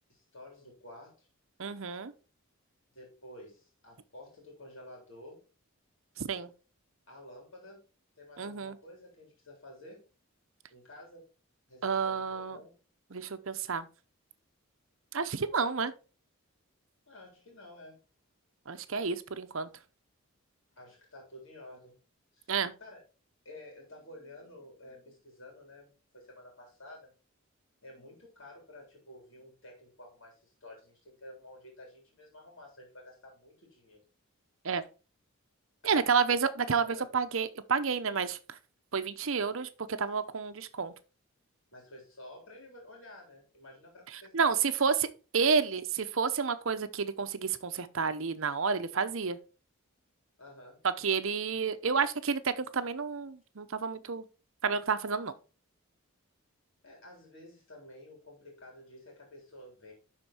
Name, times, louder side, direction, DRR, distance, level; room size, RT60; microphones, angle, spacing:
voice 1, 0.1-1.3 2.9-5.4 7.1-7.9 8.2-10.0 10.7-11.3 11.7-12.8 17.1-18.0 20.7-22.0 22.3-22.5 22.8-23.0 23.4-27.1 27.8-34.0 35.8-36.4 36.8-37.1 41.7-44.5 50.4-50.8 56.8-59.9, left 1 dB, 60° left, 3.6 m, -51 dB
voice 2, 1.6-2.1 6.2-6.5 8.4-8.8 11.8-12.6 13.1-13.9 15.1-15.9 18.7-19.7 22.5-22.7 34.6-34.8 35.8-38.6 38.9-40.9 44.3-45.1 45.3-49.4 51.0-54.2 54.6-55.3, right 5 dB, 65° right, 0.8 m, -30 dB
11.5 x 4.4 x 4.4 m
head